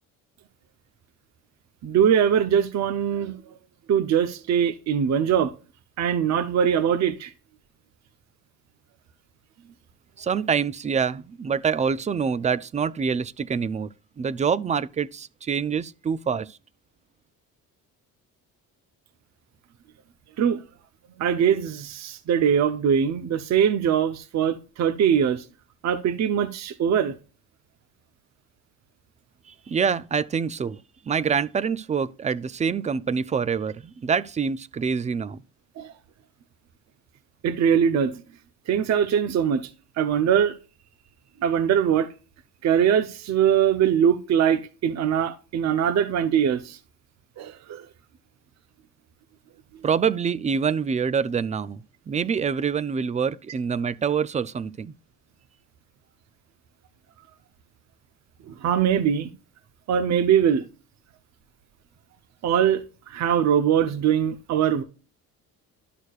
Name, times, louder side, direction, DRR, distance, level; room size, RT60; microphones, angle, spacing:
voice 1, 1.8-3.4 3.9-5.5 6.0-7.3 20.4-20.6 21.2-25.4 25.8-27.1 35.8-35.9 37.4-38.1 38.7-39.7 40.0-40.6 41.4-42.1 42.6-46.8 47.4-47.9 58.5-59.3 59.9-60.7 62.4-64.8, right 8 dB, 50° right, 0.7 m, -22 dB
voice 2, 10.2-16.6 29.5-30.8 31.1-35.4 49.8-54.9, right 6 dB, 20° right, 0.3 m, -26 dB
12.0 x 6.4 x 2.4 m
cardioid pair, 140°, 34 cm